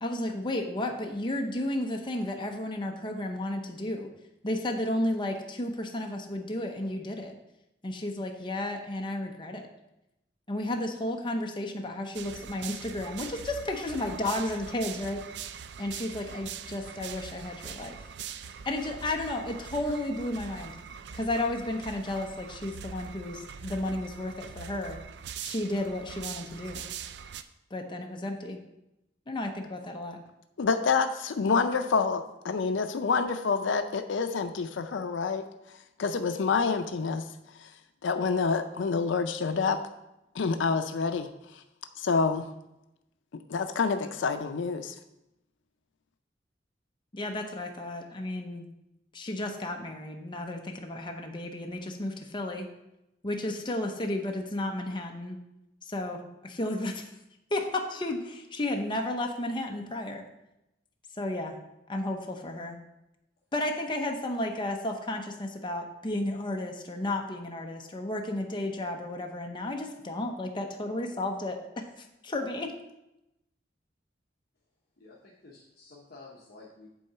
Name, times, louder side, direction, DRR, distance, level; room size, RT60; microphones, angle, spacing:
voice 1, 0.0-4.1 4.4-7.3 7.8-9.7 10.5-15.2 15.8-18.0 18.7-20.7 21.1-25.0 25.4-26.8 27.7-28.6 29.3-30.2 47.1-48.7 49.1-52.7 53.2-55.4 55.8-57.1 57.5-60.2 61.2-61.6 61.9-62.8 63.5-71.8 72.2-72.7, left 1 dB, 25° left, 2 dB, 0.7 m, -33 dB
sound 1, 12.1-27.4, right 7 dB, 65° right, 0.4 m, -42 dB
voice 2, 30.6-35.4 35.7-37.2 37.6-37.7 38.0-39.8 40.3-41.6 42.0-42.5 43.5-44.9, left 5 dB, 85° left, 8 dB, 0.5 m, -27 dB
voice 3, 75.0-76.9, left 3 dB, 55° left, -4 dB, 1.0 m, -51 dB
8.4 x 3.8 x 5.6 m, 0.90 s
head